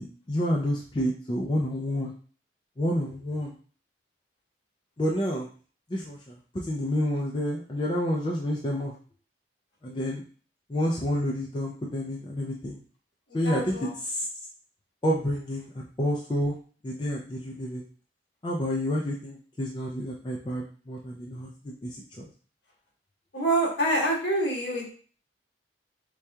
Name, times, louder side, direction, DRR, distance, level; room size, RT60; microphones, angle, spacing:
voice 1, 0.0-2.1 2.8-3.5 5.0-5.5 5.9-8.9 9.8-10.2 10.7-12.8 13.3-14.3 15.0-16.5 16.8-17.8 18.4-22.2, equal, 25° left, -2 dB, 0.4 m, -29 dB
voice 2, 13.4-13.9 23.3-25.0, right 1 dB, 65° left, -2 dB, 1.2 m, -26 dB
4.6 x 2.7 x 2.2 m, 0.41 s
head